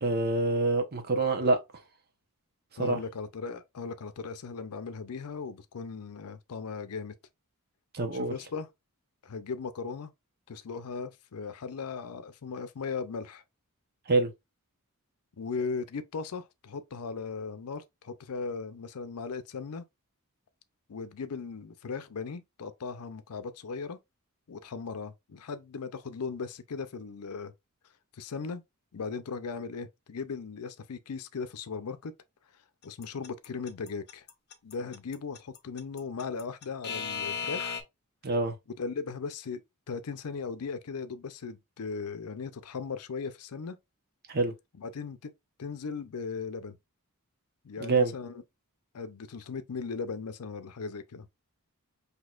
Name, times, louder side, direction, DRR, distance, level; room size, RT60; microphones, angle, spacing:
voice 1, 0.0-1.6 2.8-3.0 7.9-8.3 14.1-14.3 38.2-38.5 44.3-44.5 47.8-48.1, right 3 dB, 45° right, 0.8 m, -26 dB
voice 2, 2.8-7.1 8.1-8.7 9.2-10.1 10.5-13.4 15.4-19.8 20.9-24.0 24.5-27.5 28.2-28.6 28.9-32.1 32.8-34.2 34.6-37.8 38.8-39.6 39.9-43.8 44.8-45.3 45.6-46.8 47.6-48.4 48.9-51.3, left 5 dB, 80° left, 0.5 m, -37 dB
Alarm / Clock, 33.0-37.8, left 6 dB, 50° left, 0.8 m, -35 dB
6.1 x 2.8 x 2.4 m
head